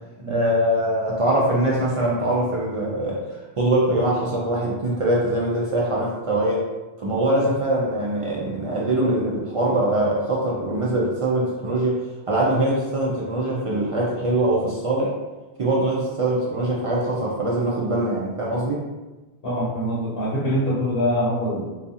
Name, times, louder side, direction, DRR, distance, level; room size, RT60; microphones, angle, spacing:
voice 1, 0.3-6.7 7.0-15.1 15.6-18.8, right 1 dB, 60° right, -4 dB, 0.3 m, -23 dB
voice 2, 19.4-21.6, equal, 65° left, -8 dB, 0.9 m, -24 dB
2.4 x 2.3 x 2.7 m, 1.2 s
omnidirectional pair, 1.1 m